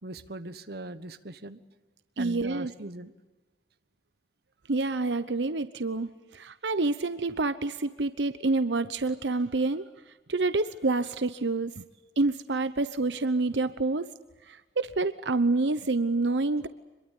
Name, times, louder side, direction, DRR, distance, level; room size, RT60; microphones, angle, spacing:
voice 1, 0.0-1.6 2.2-3.1, right 1 dB, 60° right, 11 dB, 1.3 m, -40 dB
voice 2, 2.2-2.7 4.7-9.9 10.3-11.8 12.2-14.1 14.5-16.7, right 3 dB, 85° right, 12 dB, 0.9 m, -27 dB
26.0 x 22.5 x 8.4 m, 1.2 s
head